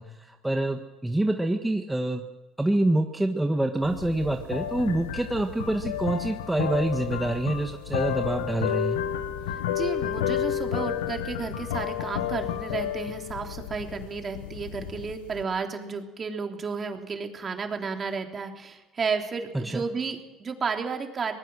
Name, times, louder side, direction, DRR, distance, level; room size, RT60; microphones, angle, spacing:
voice 1, 0.0-2.2 2.6-9.0 19.5-19.8, right 1 dB, 10° right, 4 dB, 1.6 m, -26 dB
sound 1, 3.8-15.4, left 10 dB, 90° left, 1.3 m, -31 dB
voice 2, 9.5-21.3, right 5 dB, 40° right, 4 dB, 3.4 m, -32 dB
24.0 x 19.5 x 6.4 m, 1.1 s
hypercardioid pair, 70°, 0 cm